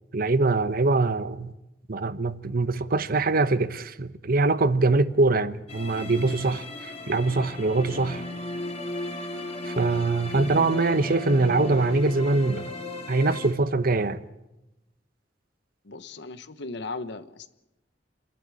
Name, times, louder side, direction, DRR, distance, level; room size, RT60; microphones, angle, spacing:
voice 1, 0.1-1.5 1.9-8.2 9.6-12.7 13.1-14.2, right 3 dB, 50° right, 1.0 m, -23 dB
sound 1, 5.7-13.5, left 2 dB, 30° left, 3.8 m, -35 dB
voice 2, 15.8-17.5, left 3 dB, 65° left, 1.1 m, -37 dB
29.0 x 12.0 x 9.8 m
head